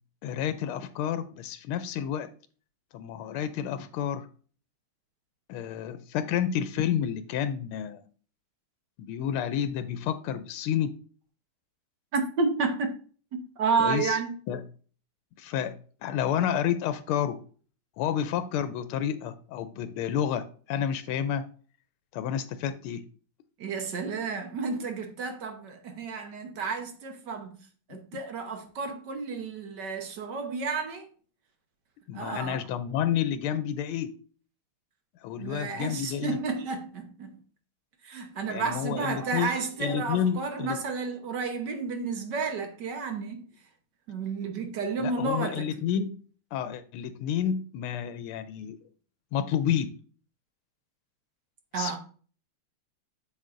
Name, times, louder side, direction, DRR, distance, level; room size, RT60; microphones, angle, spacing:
voice 1, 0.2-2.3 2.9-4.3 5.5-8.0 9.0-10.9 13.8-14.2 14.5-14.6 15.4-15.8 16.0-17.4 18.0-21.4 22.1-23.0 27.9-28.0 32.1-34.1 35.2-36.4 38.5-39.5 39.8-40.8 45.0-46.2 46.5-48.8 49.3-49.9 51.7-52.0, left 9 dB, 90° left, 1.5 m, -30 dB
voice 2, 12.1-12.9 13.6-14.3 23.6-27.6 27.9-31.1 32.1-32.6 35.4-37.4 38.0-43.4 44.1-45.6 51.7-52.0, right 4 dB, 60° right, 1.5 m, -31 dB
8.3 x 6.6 x 2.5 m
omnidirectional pair, 2.3 m